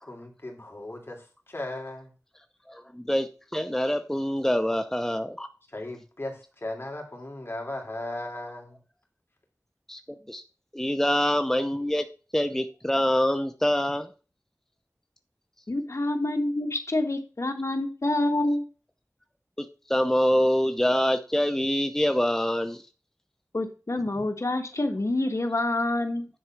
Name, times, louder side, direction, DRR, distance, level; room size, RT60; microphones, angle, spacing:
voice 1, 0.1-2.1 5.7-8.8, left 1 dB, 40° left, 0 dB, 3.1 m, -37 dB
voice 2, 2.7-5.5 9.9-10.0 10.3-10.4 10.7-12.0 12.3-14.1 19.6-22.8, equal, 5° left, 8 dB, 0.8 m, -25 dB
voice 3, 15.7-18.6 23.5-26.3, left 2 dB, 60° left, 5 dB, 1.5 m, -27 dB
10.0 x 4.1 x 6.0 m, 0.34 s
wide cardioid pair, 55°, 6 cm